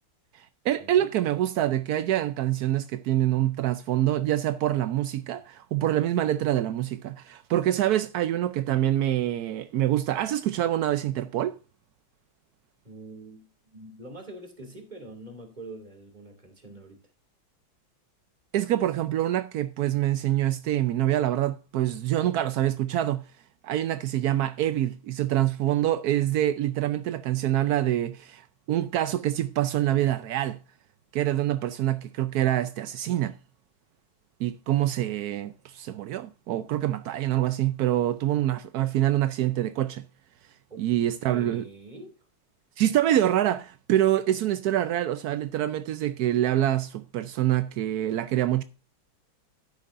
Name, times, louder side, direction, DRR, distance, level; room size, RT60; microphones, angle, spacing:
voice 1, 0.3-11.6 18.5-23.3 23.6-30.6 31.1-33.4 34.4-40.0 40.8-41.7 42.8-48.6, right 13 dB, 75° right, 0.9 m, -26 dB
voice 2, 12.8-17.0 40.7-40.8 41.3-42.1, right 2 dB, 20° right, 2.7 m, -44 dB
12.5 x 10.0 x 2.5 m
omnidirectional pair, 2.2 m